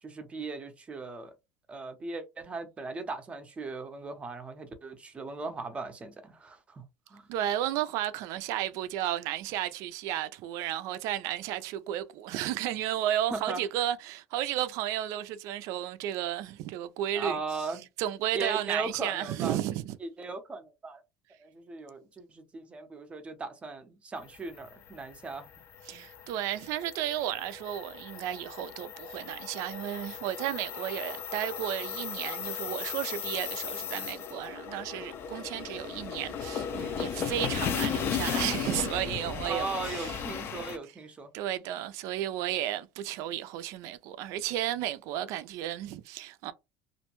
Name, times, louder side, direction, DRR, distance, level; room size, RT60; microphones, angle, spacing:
voice 1, 0.0-1.3 1.7-7.3 13.3-13.6 17.1-17.9 18.3-19.6 20.0-21.0 21.4-25.5 25.9-26.1 39.4-41.3, right 3 dB, 20° right, 0.6 m, -38 dB
voice 2, 7.3-17.4 18.0-20.0 25.9-40.2 41.3-46.5, right 12 dB, 65° right, 0.4 m, -33 dB
sound 1, 24.3-40.8, left 7 dB, 40° left, 0.5 m, -36 dB
2.5 x 2.2 x 2.9 m
cardioid pair, 135°, 6 cm